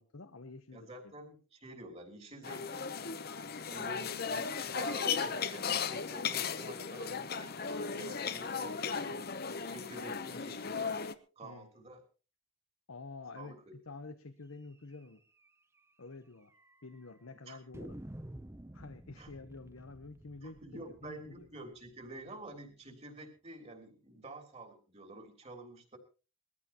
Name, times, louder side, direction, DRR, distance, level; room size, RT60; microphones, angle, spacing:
voice 1, 0.0-0.9 11.4-11.9 12.9-15.2 16.0-16.5 16.8-18.0 18.7-21.5, left 3 dB, 85° left, 8 dB, 1.1 m, -49 dB
voice 2, 0.7-3.1 3.7-9.3 9.7-11.1 11.3-12.0 13.3-13.7 17.5-17.6 19.2-19.3 20.4-26.0, right 1 dB, 30° right, 4 dB, 3.5 m, -49 dB
sound 1, 2.4-11.2, left 6 dB, 45° left, 0.9 m, -36 dB
sound 2, 14.9-15.1 15.4-15.5 15.8-15.9 16.5-17.0 17.7-22.5, right 1 dB, 10° right, 0.6 m, -51 dB
21.5 x 14.5 x 3.0 m, 0.34 s
head